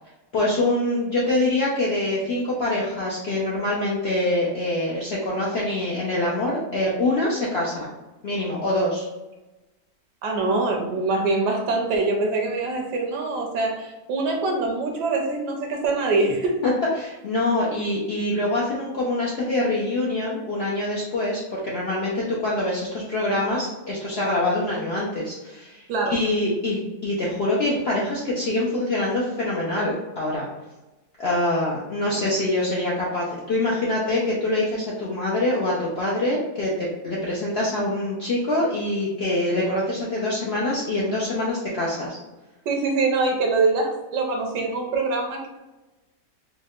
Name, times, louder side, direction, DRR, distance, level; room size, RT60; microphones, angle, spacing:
voice 1, 0.3-7.9 8.2-9.1 16.6-25.8 26.1-30.4 31.2-42.2, left 1 dB, 70° left, -5 dB, 0.5 m, -25 dB
voice 2, 10.2-16.7 25.9-26.2 42.7-45.5, right 3 dB, 75° right, 1 dB, 1.2 m, -24 dB
4.5 x 2.1 x 2.3 m, 1.1 s
omnidirectional pair, 1.8 m